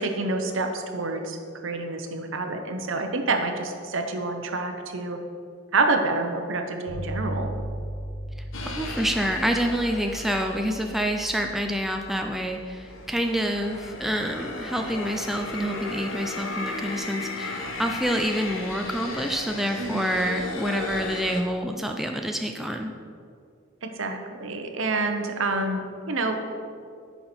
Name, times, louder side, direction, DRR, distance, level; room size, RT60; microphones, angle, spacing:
voice 1, 0.0-1.4 1.6-5.2 5.7-7.5 19.8-20.1 23.8-26.6, right 3 dB, 70° right, 5 dB, 0.8 m, -28 dB
sound 1, 6.9-15.8, right 1 dB, 45° left, 1.9 m, -38 dB
sound 2, 8.5-11.1 11.8-21.4, left 3 dB, 75° left, 1.0 m, -35 dB
voice 2, 8.8-22.9, equal, ahead, 3 dB, 0.3 m, -27 dB
9.1 x 5.8 x 4.3 m, 2.3 s
head